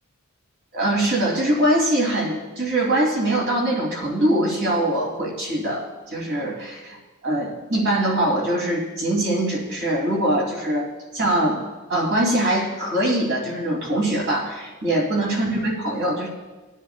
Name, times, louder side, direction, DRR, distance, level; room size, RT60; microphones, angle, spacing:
voice 1, 0.7-7.0 7.2-11.6 11.9-16.3, right 1 dB, 55° right, -3 dB, 3.1 m, -23 dB
19.5 x 9.9 x 2.4 m, 1.2 s
head